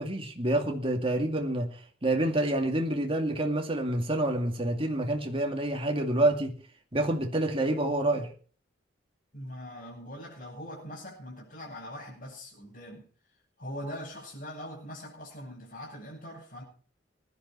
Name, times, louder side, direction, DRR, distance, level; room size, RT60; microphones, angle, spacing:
voice 1, 0.0-1.7 2.0-6.5 6.9-8.3, right 1 dB, 30° right, 2.3 m, -27 dB
voice 2, 9.3-16.6, equal, 45° left, 7.9 m, -42 dB
21.5 x 11.0 x 4.6 m
head